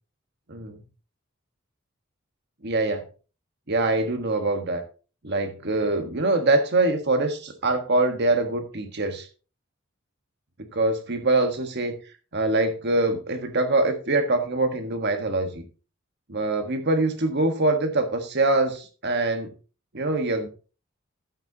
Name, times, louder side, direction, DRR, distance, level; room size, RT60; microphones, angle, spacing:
voice 1, 0.5-0.8 2.6-3.0 3.7-4.8 5.2-9.3 10.7-11.9 12.3-15.6 16.3-19.5 19.9-20.5, right 2 dB, 55° right, 7 dB, 1.5 m, -24 dB
12.0 x 8.3 x 2.9 m, 0.35 s
head